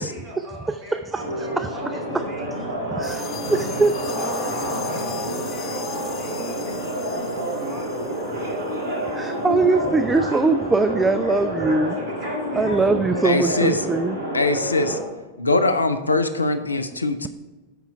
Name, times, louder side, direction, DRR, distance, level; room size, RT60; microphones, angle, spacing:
voice 1, 0.0-2.5 2.8-9.0 9.3-9.9 11.9-12.8, equal, 35° right, 0 dB, 2.5 m, -42 dB
sound 1, 1.2-15.0, right 1 dB, 60° right, 2.9 m, -28 dB
sound 2, 3.0-9.3, left 7 dB, 35° left, 0.7 m, -37 dB
voice 2, 3.5-3.9 9.1-12.0 12.6-14.2, right 3 dB, 10° right, 10 dB, 0.3 m, -21 dB
voice 3, 13.2-13.8 14.3-15.0 15.4-17.3, left 2 dB, 80° left, 9 dB, 0.5 m, -22 dB
8.0 x 5.6 x 4.6 m, 1.2 s
figure-of-eight pair, 90°, 0 cm